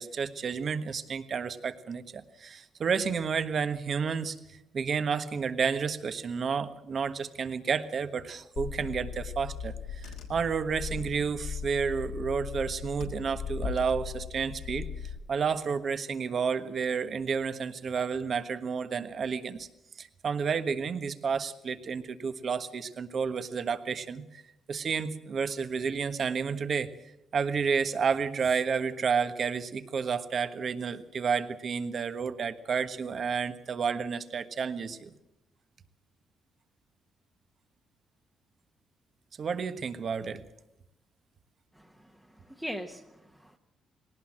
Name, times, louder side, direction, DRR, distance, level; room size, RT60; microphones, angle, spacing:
voice 1, 0.0-14.9 15.3-19.7 20.0-24.4 24.7-26.9 27.3-35.1 39.4-40.5, right 6 dB, 50° right, 11 dB, 1.3 m, -31 dB
Car / Engine, 8.6-15.2, left 6 dB, 80° left, 3.5 m, -38 dB
voice 2, 41.8-43.6, equal, 5° right, 2 dB, 1.3 m, -41 dB
19.5 x 18.0 x 7.5 m, 0.88 s
cardioid pair, 90°, 0 cm